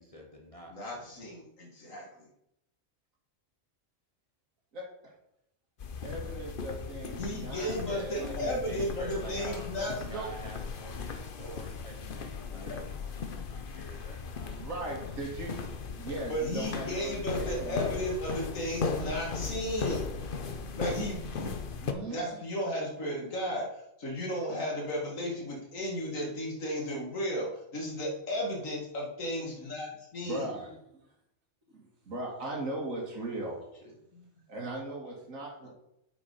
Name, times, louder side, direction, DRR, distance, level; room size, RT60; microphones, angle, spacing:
voice 1, 0.0-1.1 7.8-15.1, right 1 dB, 25° left, -1 dB, 1.4 m, -47 dB
voice 2, 0.7-2.3 7.2-10.0 11.4-11.5 12.5-12.9 16.3-20.1 20.8-21.6 22.1-30.5 34.1-34.3 35.6-35.7, equal, 75° left, -2 dB, 2.7 m, -34 dB
sound 1, 5.8-21.9, left 5 dB, 45° left, 0.9 m, -37 dB
voice 3, 6.0-7.7 8.2-8.6 10.1-10.3 14.6-15.6 15.9-18.0 21.8-22.2 30.2-31.0 31.7-33.6 34.5-35.7, right 2 dB, 85° right, -2 dB, 2.5 m, -38 dB
8.6 x 6.1 x 5.6 m, 0.82 s
omnidirectional pair, 1.4 m